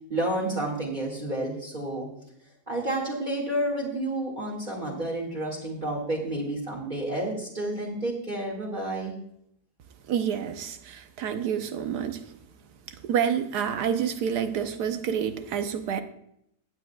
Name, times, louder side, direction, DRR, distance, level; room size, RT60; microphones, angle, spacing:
voice 1, 0.1-2.1 2.7-9.1, right 1 dB, 30° right, -3 dB, 2.1 m, -30 dB
voice 2, 10.1-12.4 12.9-16.0, right 8 dB, 85° right, 8 dB, 1.4 m, -28 dB
15.5 x 9.1 x 2.3 m, 0.75 s
omnidirectional pair, 1.7 m